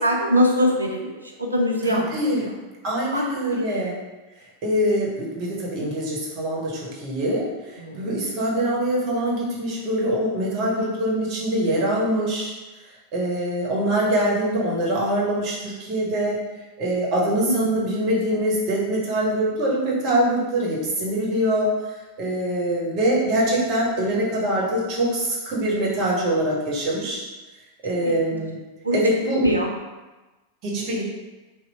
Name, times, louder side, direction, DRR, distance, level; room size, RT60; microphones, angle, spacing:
voice 1, 0.0-2.5 3.1-3.9 7.8-8.3 17.4-17.7 28.0-28.4 28.8-29.0 29.4-29.7, equal, 80° right, 0 dB, 0.5 m, -24 dB
voice 2, 1.9-2.5 2.8-4.0 4.6-12.5 13.1-16.4 16.8-21.7 22.2-27.2 27.8-28.6 28.9-29.4 30.6-31.0, right 1 dB, 40° right, -4 dB, 1.0 m, -24 dB
2.9 x 2.0 x 4.0 m, 1.1 s
figure-of-eight pair, 90°, 0 cm